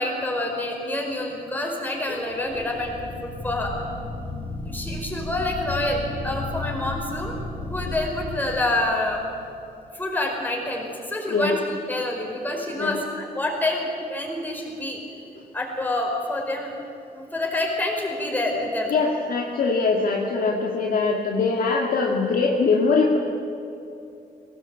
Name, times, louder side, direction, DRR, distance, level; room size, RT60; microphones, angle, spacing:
voice 1, 0.0-3.0 3.2-3.7 4.6-7.3 7.6-9.3 9.9-11.6 11.9-15.0 15.5-16.7 17.1-18.9, left 1 dB, 10° left, 0 dB, 5.0 m, -27 dB
sound 1, 2.3-9.3, left 2 dB, 30° left, 3.9 m, -34 dB
voice 2, 11.3-11.6 12.8-12.9 18.9-23.2, left 4 dB, 55° left, 0 dB, 2.0 m, -22 dB
23.0 x 18.5 x 9.0 m, 2.7 s
cardioid pair, 155°, 18 cm